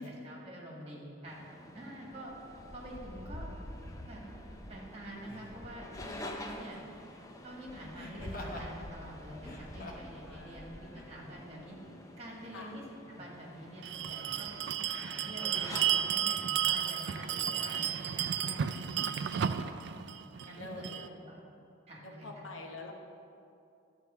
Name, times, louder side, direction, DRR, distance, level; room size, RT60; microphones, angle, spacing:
voice 1, 0.0-1.4 1.7-2.3 2.7-3.5 4.0-4.2 4.7-6.8 7.4-11.8 12.2-14.5 15.0-19.3 20.4-21.3 21.9-22.5, right 1 dB, 30° right, -3 dB, 1.9 m, -47 dB
sound 1, 1.3-16.3, left 1 dB, 15° left, 0.5 m, -47 dB
Laughter, 3.7-3.9 5.2-5.6 7.9-8.7 9.3-10.2 10.9-11.1, left 1 dB, 45° left, 1.0 m, -46 dB
voice 2, 10.2-11.5 12.5-12.7 20.5-21.2 22.0-22.9, left 2 dB, 75° left, 2 dB, 1.0 m, -47 dB
Bell, 13.8-21.1, right 9 dB, 55° right, 0.3 m, -33 dB
11.5 x 4.7 x 6.8 m, 2.6 s
head